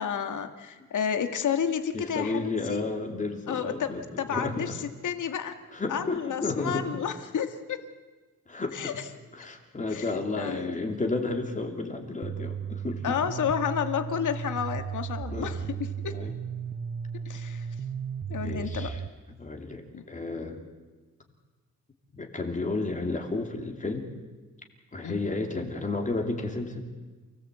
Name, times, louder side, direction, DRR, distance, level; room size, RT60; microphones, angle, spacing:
voice 1, 0.0-2.8 3.5-4.8 5.0-5.6 5.9-7.8 8.7-9.1 9.9-10.8 13.0-16.1 17.3-17.7 18.3-18.9 19.9-20.0 25.0-25.2, left 8 dB, 70° left, 8 dB, 2.0 m, -31 dB
voice 2, 1.9-4.7 5.7-6.9 8.5-9.0 9.3-13.2 15.3-15.6 16.1-16.3 18.4-19.0 19.4-20.6 22.1-24.1 24.9-26.8, left 3 dB, 25° left, 3 dB, 2.8 m, -32 dB
sound 1, 12.2-19.1, right 7 dB, 25° right, 0.7 m, -35 dB
28.5 x 18.0 x 8.3 m, 1.3 s
wide cardioid pair, 165°, 32 cm